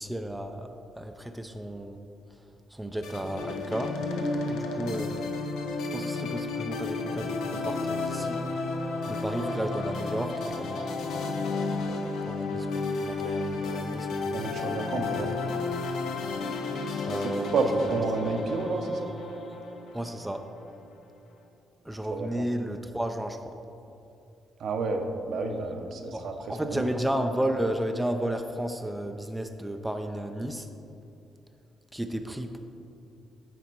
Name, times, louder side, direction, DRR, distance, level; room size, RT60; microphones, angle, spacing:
voice 1, 0.0-2.0 2.7-4.0 4.4-5.3 5.9-8.4 9.1-10.8 12.2-14.5 15.1-15.4 17.1-17.7 18.3-18.6 19.9-20.5 21.8-23.6 26.1-30.7 31.9-32.6, right 1 dB, 5° right, 6 dB, 0.4 m, -33 dB
sound 1, 3.0-20.4, left 3 dB, 80° left, 0.7 m, -32 dB
sound 2, 8.6-12.8 14.9-21.1, left 1 dB, 40° left, 1.7 m, -44 dB
voice 2, 14.3-15.3 17.0-17.1 17.5-19.1 22.1-22.4 24.6-26.9, right 3 dB, 65° right, 4 dB, 0.8 m, -30 dB
9.1 x 4.2 x 4.6 m, 2.7 s
cardioid pair, 90°, 0 cm